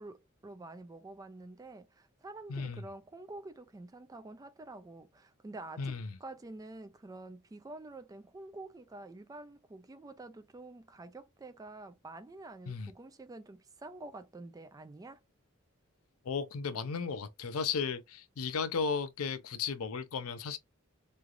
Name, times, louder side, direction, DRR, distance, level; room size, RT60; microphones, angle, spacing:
voice 1, 0.0-15.2, right 2 dB, 15° right, 0.3 m, -48 dB
voice 2, 2.5-2.8 5.8-6.2 12.7-12.9 16.2-20.6, left 5 dB, 80° left, 0.5 m, -35 dB
3.2 x 2.3 x 2.4 m
head